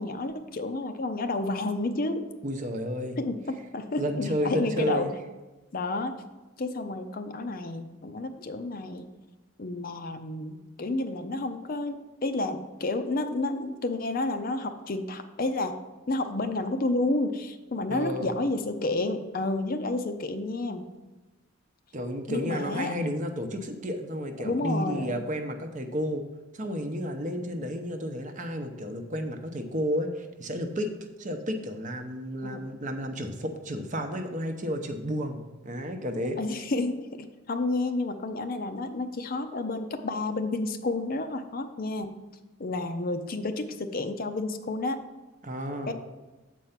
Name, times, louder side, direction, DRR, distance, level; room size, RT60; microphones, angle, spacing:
voice 1, 0.0-2.2 3.2-5.1 5.7-6.2 6.6-9.1 9.6-15.8 16.1-20.9 22.3-23.0 24.4-25.2 32.4-32.6 36.4-42.2 42.6-45.0 45.9-46.0, left 2 dB, 45° left, 7 dB, 0.5 m, -30 dB
voice 2, 2.4-3.2 4.0-5.1 17.9-18.3 21.9-26.2 26.5-30.9 31.2-36.4 45.4-45.9, equal, 35° right, 5 dB, 0.7 m, -32 dB
7.7 x 4.6 x 5.7 m, 1.2 s
head